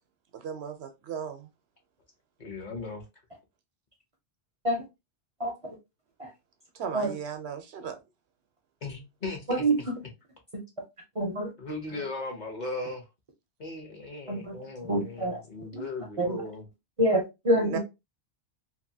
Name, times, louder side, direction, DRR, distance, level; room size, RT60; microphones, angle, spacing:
voice 1, 0.3-1.5 6.7-8.0 17.6-17.8, right 7 dB, 70° right, 0.8 m, -36 dB
voice 2, 2.4-3.0 8.8-9.6 11.6-13.0 13.6-16.6, left 2 dB, 45° left, 0.8 m, -37 dB
voice 3, 9.5-9.9 11.2-11.5 11.9-12.0 14.3-14.5 14.8-15.4 15.7-15.8 16.2-16.4 17.0-17.8, right 1 dB, 40° right, 0.6 m, -26 dB
2.8 x 2.6 x 2.6 m
omnidirectional pair, 1.2 m